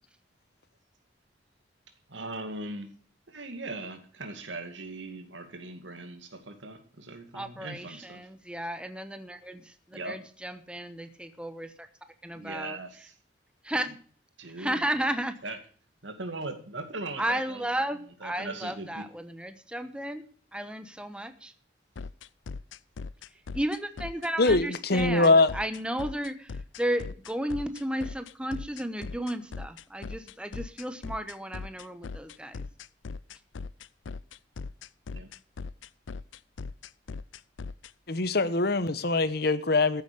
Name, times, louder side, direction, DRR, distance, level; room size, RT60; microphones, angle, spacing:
voice 1, 2.1-2.9 3.3-8.3 9.9-10.2 12.3-13.2 13.7-13.9 14.4-14.9 15.4-15.6 16.0-17.7 18.2-19.0 35.1-35.3, right 2 dB, 80° right, 2.3 m, -39 dB
voice 2, 7.3-11.9 12.2-12.8 13.6-13.9 14.6-15.4 17.2-21.5 23.5-32.6, right 1 dB, 5° right, 1.0 m, -33 dB
sound 1, 22.0-37.9, left 4 dB, 90° left, 0.5 m, -39 dB
voice 3, 24.4-25.5 38.1-40.0, left 3 dB, 55° left, 1.0 m, -23 dB
14.5 x 8.0 x 6.9 m
head